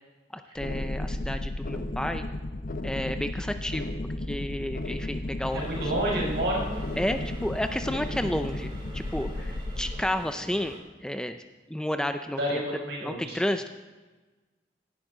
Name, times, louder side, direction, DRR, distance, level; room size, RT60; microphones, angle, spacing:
voice 1, 0.3-2.2 2.8-3.9 4.3-5.9 7.0-11.4 11.7-12.6 13.0-13.7, left 1 dB, 5° left, 8 dB, 0.4 m, -31 dB
sound 1, 0.6-10.0, left 1 dB, 50° left, 0.8 m, -34 dB
sound 2, 5.4-10.8, equal, 25° right, 2.3 m, -45 dB
voice 2, 5.5-6.6 12.3-13.4, right 1 dB, 70° right, -2 dB, 4.6 m, -29 dB
17.5 x 11.0 x 3.8 m, 1.2 s
head